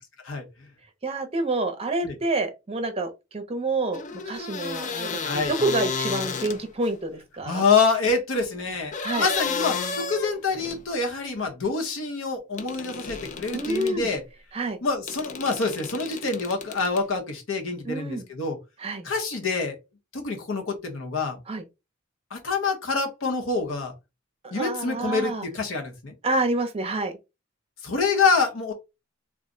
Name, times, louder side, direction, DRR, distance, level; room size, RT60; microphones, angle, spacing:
voice 1, 1.0-7.6 9.0-9.3 13.5-14.1 14.5-14.8 17.9-18.2 18.8-19.1 21.5-21.6 24.4-25.4 26.2-27.1, right 2 dB, 30° right, 0.6 m, -28 dB
sound 1, 3.9-6.9 8.9-10.9 12.6-14.0 15.1-17.1, left 5 dB, 40° left, 0.4 m, -32 dB
voice 2, 5.2-5.5 7.5-14.2 14.8-18.6 19.0-19.7 20.1-21.4 22.3-23.9 24.5-26.1 27.8-28.7, left 4 dB, 80° left, 0.9 m, -26 dB
2.4 x 2.1 x 3.7 m
head